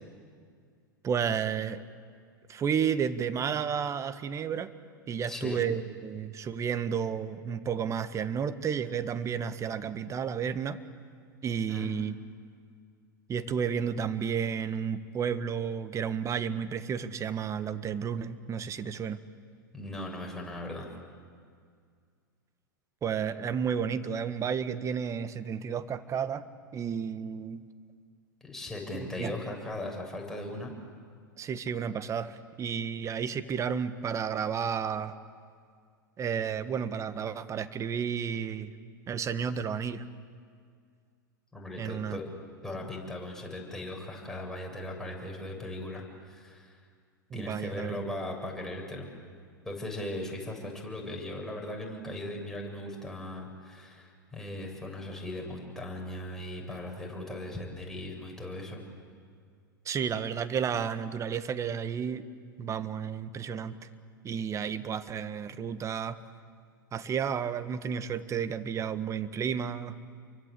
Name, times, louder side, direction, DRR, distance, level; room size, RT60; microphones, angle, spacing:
voice 1, 1.0-1.8 2.5-4.7 5.1-10.8 11.4-12.1 13.3-19.2 23.0-26.4 26.7-27.6 28.9-29.3 31.4-35.1 36.2-38.7 39.1-40.0 41.8-42.2 47.3-48.0 59.8-62.3 62.6-63.8 64.2-66.2 66.9-70.0, right 7 dB, 25° right, 12 dB, 1.5 m, -32 dB
voice 2, 5.3-5.6 11.7-11.9 19.7-20.9 28.4-30.7 41.5-42.2 42.6-46.8 47.3-49.1 49.6-58.8, left 1 dB, 5° left, 0 dB, 7.5 m, -38 dB
29.5 x 24.0 x 8.5 m, 2.1 s
hypercardioid pair, 95°, 11 cm